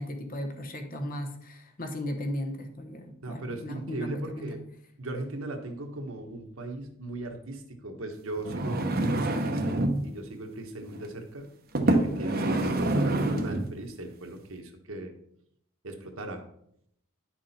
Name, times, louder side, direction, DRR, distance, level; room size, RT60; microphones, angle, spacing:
voice 1, 0.0-4.6 12.3-12.7, left 1 dB, 40° left, 5 dB, 1.2 m, -36 dB
voice 2, 3.2-4.6 5.0-11.5 11.8-15.1 15.8-16.4, right 2 dB, 70° right, 4 dB, 1.5 m, -38 dB
sound 1, 8.4-10.0 10.9-11.1 11.7-13.7 14.4-14.5, right 1 dB, 45° right, 1.0 m, -26 dB
10.5 x 6.2 x 4.4 m, 0.72 s
head